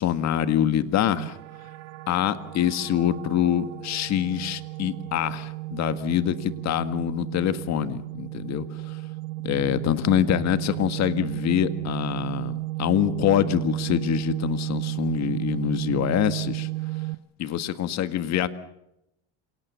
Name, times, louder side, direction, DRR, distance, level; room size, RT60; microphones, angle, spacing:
voice 1, 0.0-1.4 2.1-8.7 9.4-16.7 17.4-18.5, left 10 dB, 50° left, 11 dB, 1.8 m, -25 dB
sound 1, 1.2-17.2, right 22 dB, 85° right, 1.0 m, -33 dB
28.0 x 18.5 x 7.2 m, 0.83 s
supercardioid pair, 95°, 34 cm